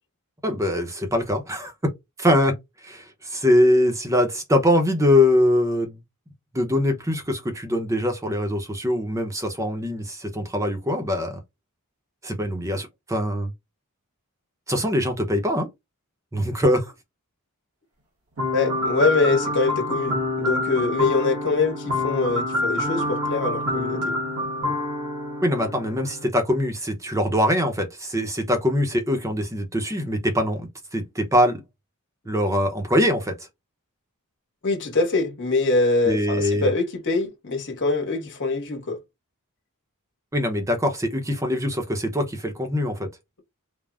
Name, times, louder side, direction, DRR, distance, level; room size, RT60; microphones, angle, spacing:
voice 1, 0.4-1.7 2.2-2.5 2.8-6.0 6.5-11.4 12.2-13.5 14.7-15.7 16.3-16.9 25.4-31.6 32.3-33.3 36.1-36.7 40.3-43.1, left 1 dB, 15° right, 0.6 m, -23 dB
sound 1, 18.4-26.2, left 1 dB, 85° right, 1.4 m, -27 dB
voice 2, 18.5-24.2 34.6-39.0, left 3 dB, 55° left, 1.1 m, -24 dB
3.3 x 2.0 x 2.4 m
head